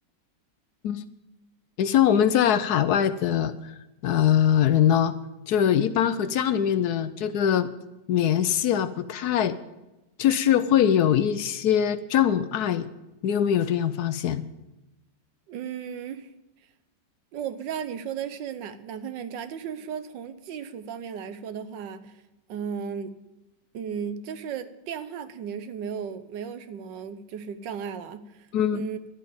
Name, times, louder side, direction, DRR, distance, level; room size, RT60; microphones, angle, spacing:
voice 1, 1.8-3.7 4.0-5.1 5.5-7.7 8.1-9.5 10.2-12.9 13.2-14.5 28.5-28.8, left 9 dB, 70° left, 13 dB, 1.1 m, -22 dB
voice 2, 15.5-16.3 17.3-22.2 22.5-23.1 23.7-29.0, right 7 dB, 80° right, 12 dB, 1.5 m, -35 dB
11.5 x 8.7 x 8.7 m, 1.0 s
omnidirectional pair, 1.9 m